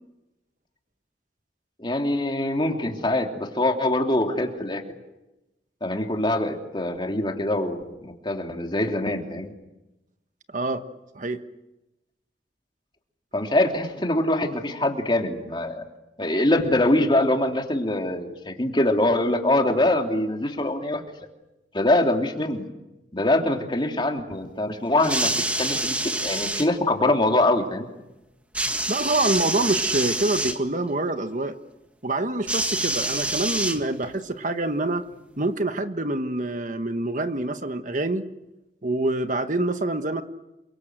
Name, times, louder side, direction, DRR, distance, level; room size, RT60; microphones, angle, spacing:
voice 1, 1.8-4.8 5.8-9.5 13.3-15.8 16.2-21.0 21.7-22.6 23.1-27.9, left 1 dB, 25° left, 3 dB, 3.0 m, -24 dB
voice 2, 10.5-10.9 11.1-11.4 28.9-31.5 32.0-35.1 35.4-38.2 38.8-40.2, right 2 dB, 45° right, 8 dB, 1.3 m, -26 dB
sound 1, 25.0-26.7 28.5-30.6 32.5-34.2 35.1-35.2, right 1 dB, 10° right, 1.7 m, -26 dB
28.5 x 24.0 x 8.0 m, 0.97 s
head